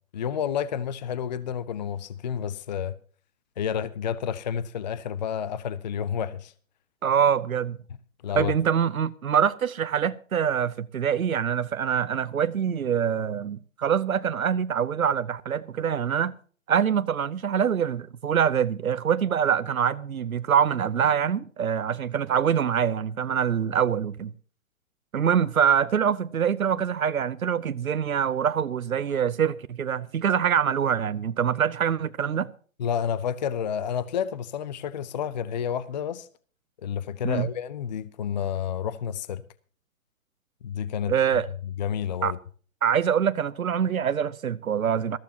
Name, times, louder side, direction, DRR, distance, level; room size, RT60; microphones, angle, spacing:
voice 1, 0.1-3.0 3.6-6.5 8.2-8.5 32.8-36.3 36.8-39.4 40.6-42.4, left 8 dB, 35° left, 0.5 m, -30 dB
voice 2, 7.0-7.8 8.3-16.3 16.7-24.3 25.1-32.5 37.2-37.5 41.1-41.5 42.2-42.3 42.8-45.2, right 8 dB, 85° right, 0.8 m, -24 dB
19.5 x 14.5 x 2.8 m
hypercardioid pair, 140°, 41 cm